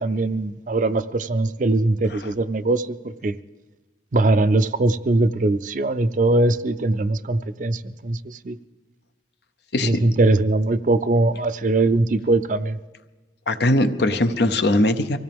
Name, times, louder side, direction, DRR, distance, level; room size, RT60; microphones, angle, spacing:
voice 1, 0.0-3.3 4.1-8.6 9.8-12.8, right 2 dB, 45° right, 13 dB, 0.5 m, -21 dB
voice 2, 13.5-15.2, left 1 dB, 70° left, 9 dB, 0.8 m, -20 dB
24.5 x 16.0 x 3.6 m, 1.2 s
head